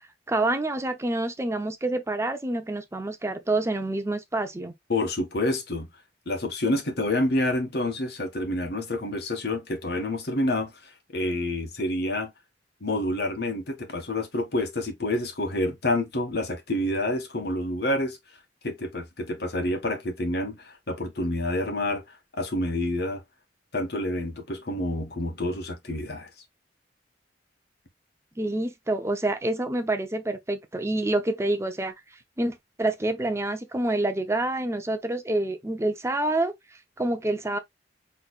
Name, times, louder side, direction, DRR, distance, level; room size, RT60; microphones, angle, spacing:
voice 1, 0.3-4.7 28.4-37.6, right 2 dB, 15° right, 0.5 m, -27 dB
voice 2, 4.9-5.9 6.3-10.7 11.1-12.3 12.8-18.2 18.6-22.0 22.3-23.2 23.7-26.3, left 1 dB, 60° left, 1.3 m, -28 dB
6.2 x 3.2 x 2.3 m
head